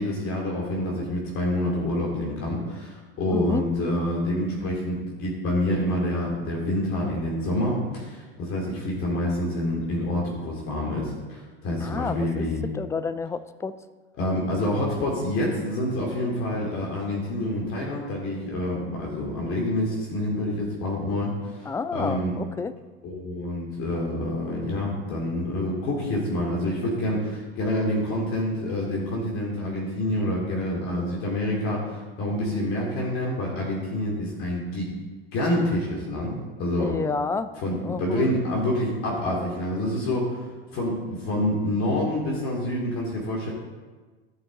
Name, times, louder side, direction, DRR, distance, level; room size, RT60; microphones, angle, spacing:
voice 1, 0.0-12.6 14.2-22.3 23.0-34.9 35.3-36.9 37.6-40.4 40.7-43.5, left 1 dB, 45° left, -3 dB, 2.8 m, -27 dB
voice 2, 3.3-3.6 11.8-12.5 12.7-13.8 21.7-22.7 36.8-37.5 37.8-38.2, left 4 dB, 10° left, 14 dB, 0.4 m, -30 dB
16.0 x 5.6 x 4.0 m, 1.3 s
hypercardioid pair, 105°, 31 cm